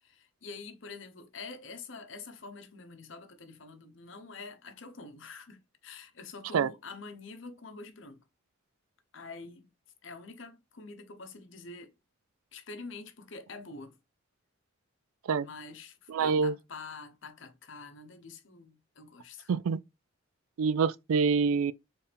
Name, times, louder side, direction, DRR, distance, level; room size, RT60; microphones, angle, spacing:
voice 1, 0.0-8.2 9.1-9.7 10.0-11.9 12.5-14.0 15.4-19.5, left 4 dB, 60° left, 0.9 m, -46 dB
voice 2, 16.1-16.5 19.5-19.8 20.6-21.7, right 5 dB, 80° right, 0.4 m, -26 dB
4.5 x 3.4 x 3.4 m
head